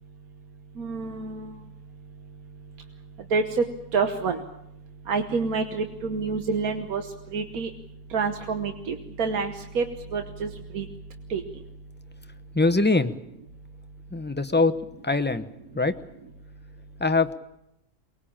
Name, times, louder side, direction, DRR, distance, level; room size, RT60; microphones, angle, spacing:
voice 1, 0.8-1.5 3.3-3.6 3.9-4.4 5.1-7.0 7.3-7.7 8.1-9.8 10.1-10.8 11.3-11.4, right 4 dB, 85° right, 6 dB, 1.7 m, -27 dB
voice 2, 12.5-13.1 14.1-14.7 15.0-15.4 15.7-16.0 17.0-17.3, left 3 dB, 10° left, 8 dB, 0.7 m, -22 dB
23.0 x 20.0 x 8.8 m, 0.83 s
omnidirectional pair, 1.5 m